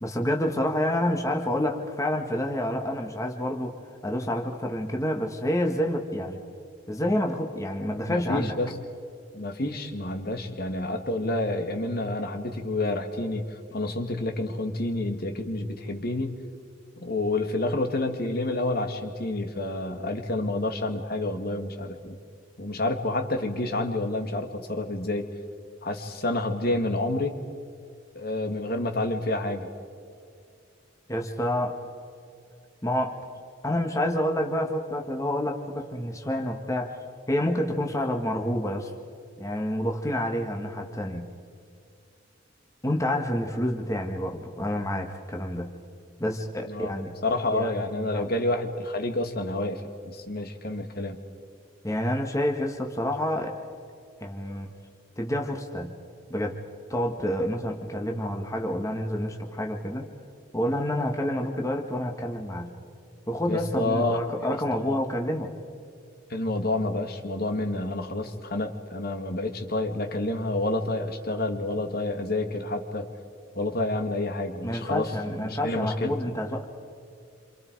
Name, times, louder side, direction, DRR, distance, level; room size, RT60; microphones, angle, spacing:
voice 1, 0.0-3.8 4.0-6.4 6.9-8.5 31.1-31.7 32.8-33.2 33.6-37.0 37.3-38.9 39.4-41.3 42.8-45.7 46.2-47.1 47.5-48.3 51.8-53.5 54.2-54.7 55.2-55.9 56.3-56.6 56.9-60.1 60.5-62.7 63.3-65.5 74.6-76.6, left 1 dB, 15° left, 2 dB, 1.6 m, -28 dB
voice 2, 8.1-8.8 9.3-13.5 13.7-16.3 17.0-22.2 22.6-25.3 25.8-27.4 28.2-29.7 46.7-46.9 47.2-51.2 63.5-65.0 66.3-73.1 73.6-75.1 75.4-76.1, left 2 dB, 50° left, 5 dB, 2.0 m, -29 dB
28.0 x 27.5 x 4.7 m, 2.4 s
head